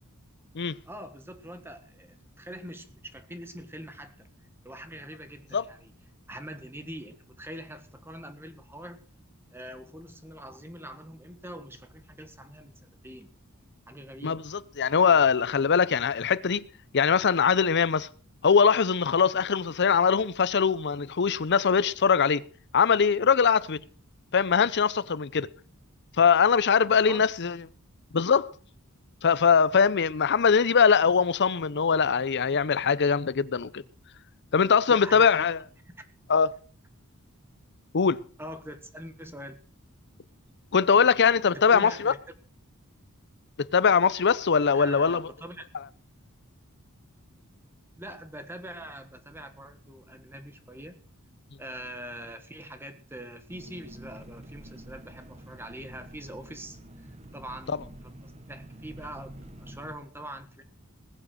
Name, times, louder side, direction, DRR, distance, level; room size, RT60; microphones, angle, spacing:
voice 1, 0.8-4.3 4.6-5.9 6.3-9.1 9.5-12.7 13.0-13.3 13.9-14.4 27.1-27.2 34.9-35.5 38.4-39.6 41.5-42.2 44.7-45.7 48.0-51.0 51.6-60.6, right 1 dB, 10° right, 1.6 m, -43 dB
voice 2, 14.2-16.7 16.9-18.1 18.4-22.4 22.7-23.8 24.3-25.5 26.2-27.6 28.1-28.5 29.2-33.8 34.5-35.6 36.3-36.5 37.9-38.2 40.7-42.1 43.7-45.2, left 6 dB, 55° left, 0.7 m, -22 dB
Engine, 53.5-59.9, right 1 dB, 30° right, 1.3 m, -47 dB
20.5 x 7.4 x 6.3 m
head